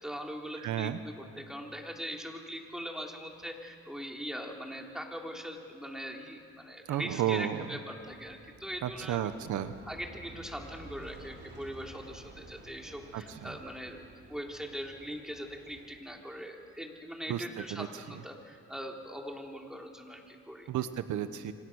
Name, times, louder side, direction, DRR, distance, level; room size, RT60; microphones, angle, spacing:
voice 1, 0.0-9.3 9.9-20.7, equal, ahead, 1 dB, 3.8 m, -41 dB
voice 2, 0.6-1.0 6.9-7.7 8.8-9.7 13.1-13.5 17.3-17.4 17.7-17.9 20.7-21.5, right 11 dB, 75° right, 11 dB, 1.1 m, -32 dB
Aircraft, 8.0-16.0, right 2 dB, 35° right, 4.8 m, -52 dB
29.0 x 26.0 x 6.5 m, 2.3 s
cardioid pair, 90°, 30 cm